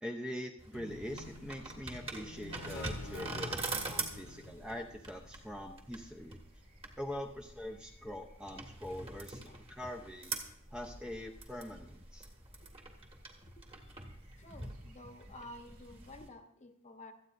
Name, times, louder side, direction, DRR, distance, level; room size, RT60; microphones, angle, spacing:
voice 1, 0.0-6.4 7.0-10.3 10.7-12.3, equal, 5° right, 2 dB, 0.7 m, -43 dB
sound 1, 0.6-16.3, right 3 dB, 25° right, 1.7 m, -44 dB
sound 2, 0.7-5.7, left 3 dB, 85° left, 0.6 m, -50 dB
sound 3, 1.1-16.2, equal, 70° right, 2.1 m, -58 dB
voice 2, 13.4-13.9 14.4-17.1, left 1 dB, 30° left, 6 dB, 1.1 m, -52 dB
26.0 x 8.9 x 2.6 m, 0.77 s
head